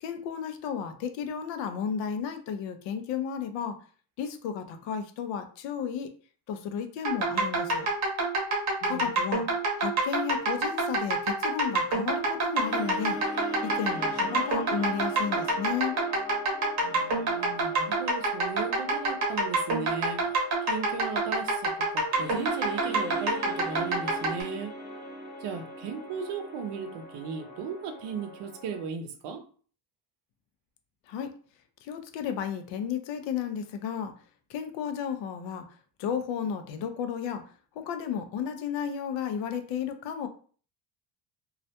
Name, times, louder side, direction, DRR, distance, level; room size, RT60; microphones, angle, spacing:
voice 1, 0.0-3.8 4.2-6.1 6.5-7.9 8.9-9.5 9.8-13.2 13.6-16.0 31.1-31.3 31.8-34.1 34.5-35.7 36.0-37.4 37.8-40.3, left 7 dB, 85° left, 0.6 m, -33 dB
sound 1, 7.0-24.4, right 2 dB, 40° right, 0.8 m, -27 dB
voice 2, 8.8-9.1 16.8-24.7 25.4-29.4, right 6 dB, 75° right, 0.6 m, -37 dB
sound 2, 12.5-28.8, left 2 dB, 65° left, 1.2 m, -42 dB
2.3 x 2.1 x 2.7 m
cardioid pair, 155°, 43 cm